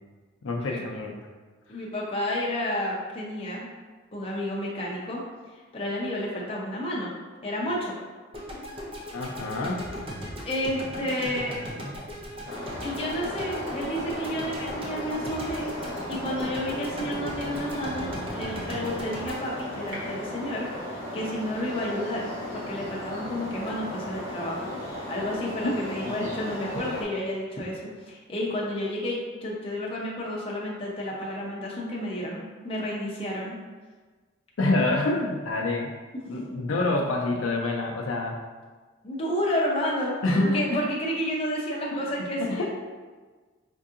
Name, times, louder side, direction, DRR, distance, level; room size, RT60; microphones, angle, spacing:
voice 1, 0.4-1.2 9.1-9.8 25.6-25.7 26.0-26.3 26.9-27.0 34.6-35.9 36.3-38.4 40.2-40.8 41.9-42.0 42.4-42.7, left 2 dB, 75° left, 0 dB, 0.4 m, -27 dB
voice 2, 1.7-3.7 4.1-5.2 5.7-7.1 7.4-7.9 10.4-11.6 12.8-15.7 16.1-20.7 21.1-22.3 22.5-33.6 36.1-36.2 39.0-42.7, left 1 dB, 30° left, -4 dB, 0.6 m, -31 dB
sound 1, 8.3-20.6, equal, 30° right, 0.5 m, -38 dB
sound 2, 12.4-27.0, left 1 dB, 65° right, 1.1 m, -36 dB
4.5 x 2.7 x 2.5 m, 1.4 s
head